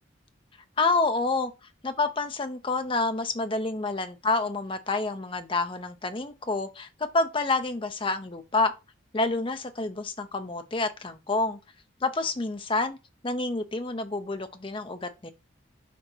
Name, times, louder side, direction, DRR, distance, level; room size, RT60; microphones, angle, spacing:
voice 1, 0.8-1.5 1.8-6.9 7.1-8.7 9.1-11.6 12.0-13.0 13.2-15.3, left 3 dB, 25° left, 0.6 m, -28 dB
5.9 x 2.9 x 5.5 m
head